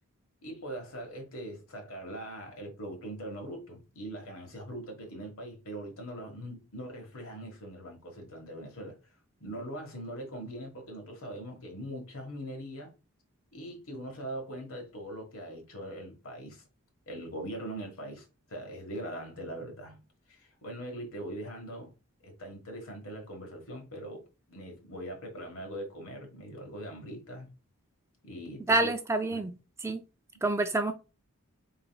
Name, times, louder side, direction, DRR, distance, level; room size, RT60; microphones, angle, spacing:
voice 1, 0.4-9.0 9.4-12.9 13.5-16.6 17.1-20.0 20.3-21.9 22.2-27.5 28.2-28.9 29.3-29.4, right 1 dB, 70° left, 1.5 m, -41 dB
voice 2, 28.7-29.6 29.8-30.0 30.4-30.9, right 2 dB, 10° right, 0.3 m, -27 dB
4.5 x 3.9 x 2.3 m
head